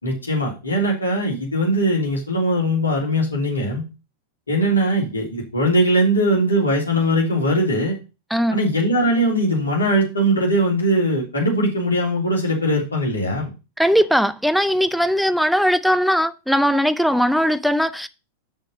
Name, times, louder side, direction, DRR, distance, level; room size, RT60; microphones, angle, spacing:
voice 1, 0.0-3.8 4.5-8.0 8.5-13.5, equal, 75° left, 3.6 m, -20 dB
voice 2, 13.8-18.1, equal, ahead, 0.5 m, -19 dB
6.4 x 6.4 x 5.3 m
figure-of-eight pair, 90°, 0 cm